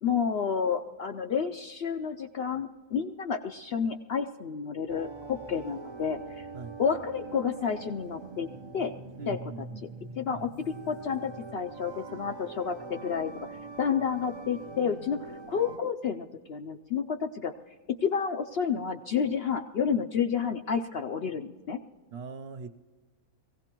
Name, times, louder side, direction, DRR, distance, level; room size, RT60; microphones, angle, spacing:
voice 1, 0.0-6.4 6.8-8.5 8.7-8.9 9.3-9.4 10.2-13.3 13.8-17.5 18.0-21.8, left 6 dB, 60° left, 6 dB, 0.6 m, -30 dB
sound 1, 4.9-15.8, right 3 dB, 30° right, 0.5 m, -43 dB
voice 2, 9.2-9.8 10.3-10.5 22.1-22.7, right 5 dB, 60° right, 7 dB, 0.7 m, -41 dB
23.5 x 16.5 x 3.0 m, 1.4 s
omnidirectional pair, 1.5 m